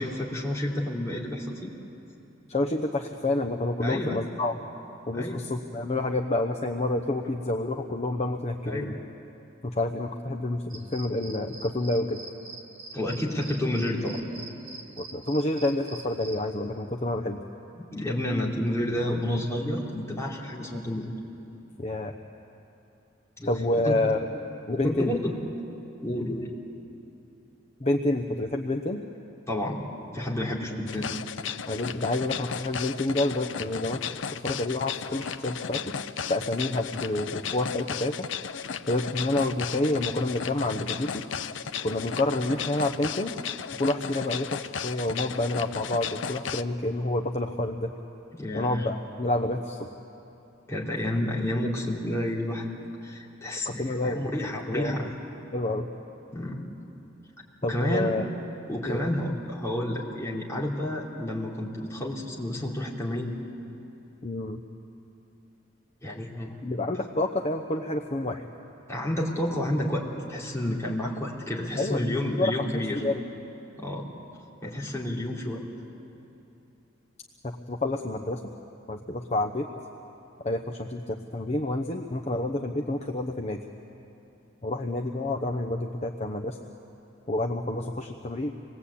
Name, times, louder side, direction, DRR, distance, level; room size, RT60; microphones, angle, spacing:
voice 1, 0.0-1.7 3.8-4.3 5.1-5.4 8.6-8.9 12.9-14.2 17.7-21.1 23.4-24.0 24.7-25.3 26.0-26.5 29.5-29.8 30.1-31.1 48.3-48.9 50.7-52.7 53.0-55.1 56.3-56.6 57.6-58.2 58.7-63.3 66.0-66.5 68.9-73.0 73.8-74.1 74.6-75.6, left 1 dB, 15° left, -4 dB, 3.3 m, -30 dB
voice 2, 2.5-4.6 5.1-8.9 9.6-12.2 15.0-17.4 21.8-22.1 23.5-24.2 24.7-25.2 27.8-29.0 31.7-34.0 34.4-35.9 36.3-38.3 38.9-41.2 41.8-43.3 43.8-47.9 48.5-49.9 53.6-54.2 54.7-54.9 55.5-55.9 57.6-58.2 58.8-59.0 64.2-64.6 66.6-68.4 71.8-72.7 73.0-73.2 77.4-78.4 78.9-79.7 80.4-83.6 84.6-86.6 87.3-88.5, left 2 dB, 35° left, 4 dB, 0.9 m, -28 dB
sound 1, 10.7-16.4, right 3 dB, 50° right, 3.5 m, -44 dB
sound 2, 30.9-46.6, left 7 dB, 75° left, 0.6 m, -35 dB
27.5 x 20.5 x 8.6 m, 2.8 s
head